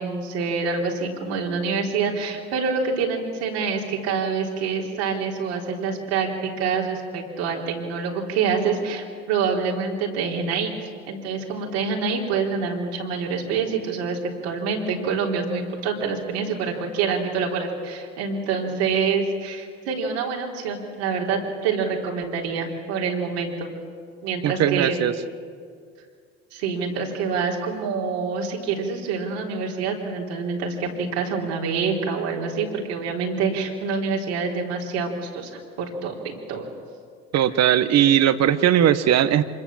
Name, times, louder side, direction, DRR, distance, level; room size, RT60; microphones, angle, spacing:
voice 1, 0.0-10.7 11.1-23.7 24.2-25.0 26.5-36.7, right 5 dB, 80° right, -1 dB, 3.8 m, -26 dB
voice 2, 24.4-25.1 37.3-39.4, right 10 dB, 55° right, 13 dB, 1.2 m, -19 dB
26.0 x 21.0 x 7.4 m, 2.2 s
hypercardioid pair, 65°, 31 cm